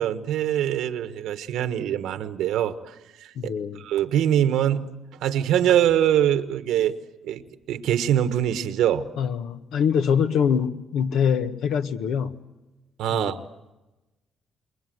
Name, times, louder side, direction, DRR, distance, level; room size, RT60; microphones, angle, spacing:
voice 1, 0.0-2.7 3.2-3.5 3.8-4.9 5.2-7.0 7.2-9.1 13.0-13.4, right 10 dB, 85° right, 11 dB, 1.5 m, -23 dB
voice 2, 3.3-3.8 9.2-12.4 13.1-13.4, left 7 dB, 80° left, 9 dB, 1.4 m, -24 dB
29.0 x 21.5 x 7.9 m, 1.1 s
cardioid pair, 90°, 0 cm